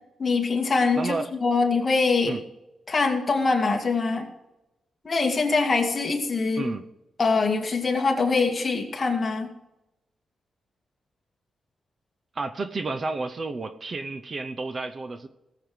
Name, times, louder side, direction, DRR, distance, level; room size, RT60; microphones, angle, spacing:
voice 1, 0.2-1.1 1.4-2.4 2.9-4.3 5.0-6.7 7.2-9.5, left 4 dB, 30° left, 1 dB, 2.3 m, -23 dB
voice 2, 1.0-1.3 2.3-2.4 6.6-6.8 12.3-15.3, right 3 dB, 35° right, 9 dB, 0.8 m, -31 dB
19.0 x 7.8 x 5.2 m, 0.94 s
wide cardioid pair, 150°, 0 cm